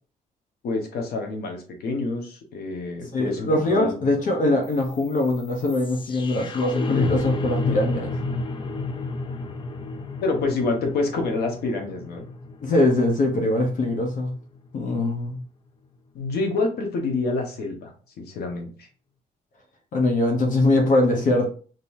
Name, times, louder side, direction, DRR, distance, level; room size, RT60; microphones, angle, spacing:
voice 1, 0.6-4.2 10.2-12.2 16.1-17.9 18.2-18.9, left 3 dB, 85° left, 3 dB, 1.3 m, -27 dB
voice 2, 3.1-8.1 12.6-14.3 14.7-15.4 19.9-21.5, left 2 dB, 55° left, 2 dB, 1.0 m, -22 dB
sound 1, 4.7-14.7, left 3 dB, 30° left, 0.5 m, -31 dB
5.3 x 3.0 x 2.7 m, 0.40 s
cardioid pair, 145°, 16 cm